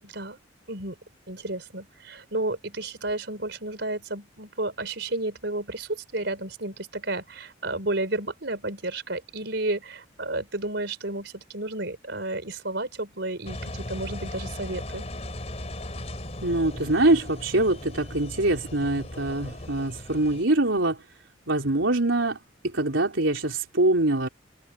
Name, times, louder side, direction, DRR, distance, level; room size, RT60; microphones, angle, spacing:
voice 1, 0.0-0.4 0.7-1.0 1.3-15.1, right 2 dB, 65° right, 5.3 m, -32 dB
Engine, 13.4-20.4, left 1 dB, 35° left, 3.6 m, -37 dB
voice 2, 16.4-21.0 21.5-22.4 22.7-24.3, right 2 dB, 85° right, 4.1 m, -24 dB
head